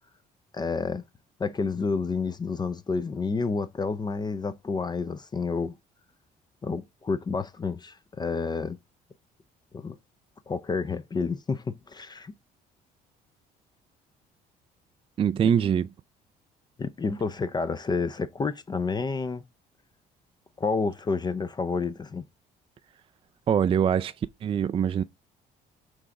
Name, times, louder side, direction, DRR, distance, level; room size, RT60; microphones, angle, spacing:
voice 1, 0.5-1.0 1.4-5.8 6.6-8.8 9.7-10.0 10.5-12.3 16.8-19.4 20.6-22.2, left 4 dB, 25° left, 0.5 m, -29 dB
voice 2, 15.2-15.9 23.5-24.1 24.4-25.0, right 8 dB, 30° right, 0.4 m, -23 dB
6.2 x 3.4 x 4.7 m
cardioid pair, 110°, 17 cm